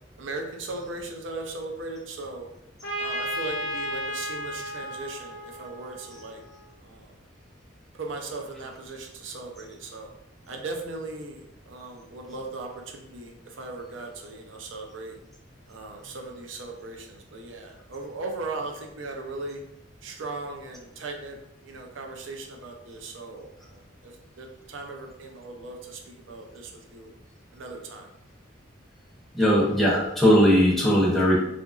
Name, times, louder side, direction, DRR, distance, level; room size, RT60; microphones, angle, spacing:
voice 1, 0.2-2.5 3.0-6.4 6.8-7.1 8.0-10.1 10.5-15.2 15.7-19.6 20.0-21.4 21.6-27.1 27.5-28.1, right 3 dB, 80° right, 2 dB, 0.5 m, -38 dB
Trumpet, 2.8-6.6, equal, 70° left, 0.7 m, -34 dB
voice 2, 29.3-31.4, equal, ahead, -6 dB, 0.6 m, -19 dB
2.8 x 2.5 x 2.4 m, 0.81 s
head